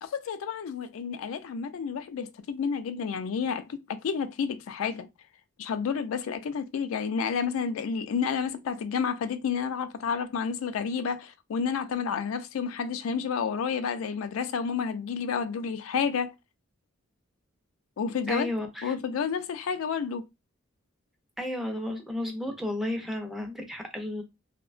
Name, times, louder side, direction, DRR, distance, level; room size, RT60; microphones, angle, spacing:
voice 1, 0.0-5.1 5.6-16.3 18.0-18.5 18.8-20.2, left 6 dB, 75° left, 0.3 m, -30 dB
voice 2, 18.3-18.9 21.4-24.2, left 1 dB, ahead, 0.5 m, -33 dB
2.7 x 2.1 x 2.4 m
head